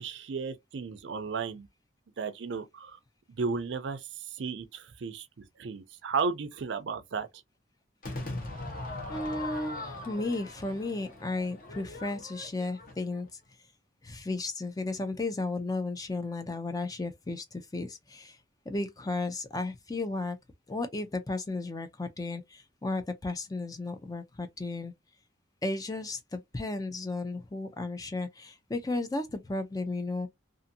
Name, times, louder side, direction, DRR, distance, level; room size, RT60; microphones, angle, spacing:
voice 1, 0.0-1.7 2.2-3.0 3.3-7.3, right 5 dB, 65° right, 0.5 m, -34 dB
Crowd / Fireworks, 8.0-13.3, left 2 dB, 45° left, 0.9 m, -40 dB
voice 2, 9.1-13.4 14.0-18.4 18.7-20.4 20.7-24.9 25.6-30.3, left 2 dB, 20° left, 0.4 m, -34 dB
2.6 x 2.5 x 2.6 m
head